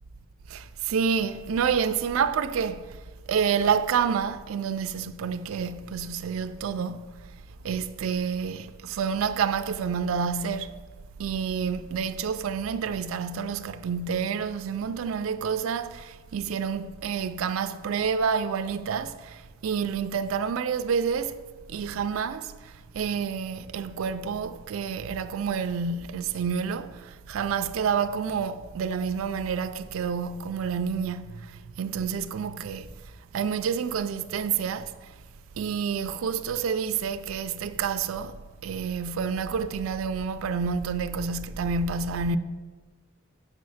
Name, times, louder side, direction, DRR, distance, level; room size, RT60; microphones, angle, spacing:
voice 1, 0.5-3.0 3.3-7.1 7.6-10.7 11.2-21.4 21.7-32.9 33.3-34.9 35.6-42.4, right 6 dB, 75° right, 0.4 m, -28 dB
6.2 x 4.2 x 6.3 m
head